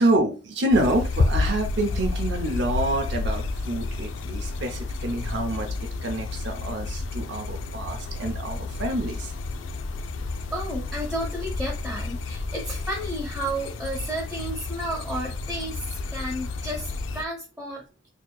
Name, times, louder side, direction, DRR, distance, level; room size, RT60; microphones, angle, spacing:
voice 1, 0.0-5.7 6.0-9.3, right 1 dB, 60° right, 4 dB, 0.6 m, -27 dB
sound 1, 0.7-17.2, left 3 dB, 70° left, 0.4 m, -30 dB
voice 2, 10.5-18.1, right 1 dB, 5° right, -5 dB, 0.8 m, -32 dB
4.3 x 2.8 x 2.3 m, 0.32 s
head